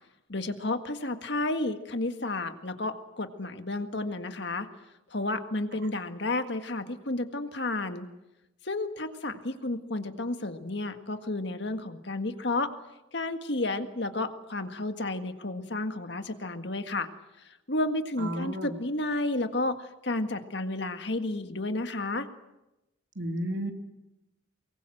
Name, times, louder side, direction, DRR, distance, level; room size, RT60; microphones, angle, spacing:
voice 1, 0.3-4.7 5.1-8.1 8.7-12.7 13.1-17.1 17.7-19.8 20.0-22.3, left 2 dB, 60° left, 8 dB, 1.8 m, -31 dB
voice 2, 18.2-18.7 23.2-23.7, right 1 dB, 65° right, 5 dB, 2.9 m, -32 dB
24.5 x 23.0 x 7.8 m, 0.93 s
head